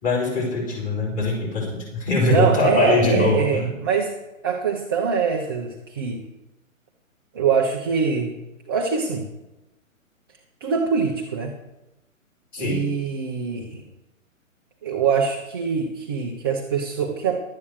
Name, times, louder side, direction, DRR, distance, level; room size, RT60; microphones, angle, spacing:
voice 1, 0.0-3.7 12.5-12.8, left 3 dB, 20° left, -4 dB, 4.1 m, -22 dB
voice 2, 2.3-4.1 4.4-6.2 7.3-8.3 8.7-9.3 10.6-11.5 12.6-13.8 14.8-17.4, right 6 dB, 20° right, 1 dB, 0.6 m, -23 dB
11.5 x 8.4 x 6.2 m, 1.0 s
figure-of-eight pair, 130°, 41 cm